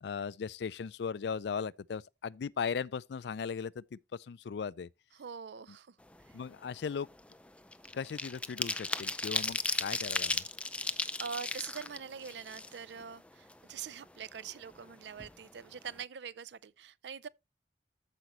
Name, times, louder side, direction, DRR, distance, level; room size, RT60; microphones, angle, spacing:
voice 1, 0.0-4.9 6.3-7.1 7.9-10.4, left 6 dB, 75° left, 0.4 m, -37 dB
voice 2, 5.1-6.4 10.8-17.3, right 7 dB, 80° right, 0.5 m, -44 dB
sound 1, 6.1-6.4 6.7-13.1 13.5-13.6 13.9-14.9 15.2-15.3 15.6-15.9, left 2 dB, 5° left, 0.4 m, -36 dB
14.0 x 5.1 x 3.0 m
head